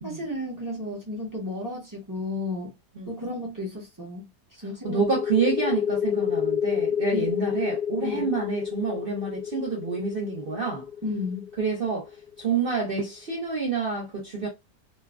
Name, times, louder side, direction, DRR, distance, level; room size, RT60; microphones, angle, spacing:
voice 1, 0.0-2.7 3.1-4.2 4.6-5.0 7.1-7.2 8.0-8.3 11.0-11.5, left 2 dB, 20° right, 0.6 m, -33 dB
voice 2, 4.8-10.9 11.6-12.1 12.4-14.5, right 5 dB, 60° right, 0.5 m, -28 dB
sound 1, 4.9-12.3, left 8 dB, 85° left, 1.2 m, -29 dB
3.0 x 2.2 x 2.3 m
omnidirectional pair, 1.7 m